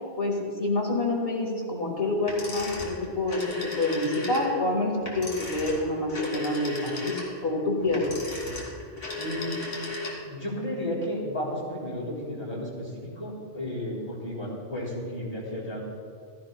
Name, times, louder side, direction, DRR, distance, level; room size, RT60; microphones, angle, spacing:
voice 1, 0.2-8.0, left 2 dB, 55° left, 0 dB, 2.0 m, -27 dB
sound 1, 2.2-10.4, left 3 dB, 80° left, 2.7 m, -35 dB
voice 2, 9.2-9.6 10.2-15.8, left 1 dB, 30° left, -6 dB, 3.1 m, -33 dB
15.0 x 14.5 x 2.2 m, 2.2 s
omnidirectional pair, 1.2 m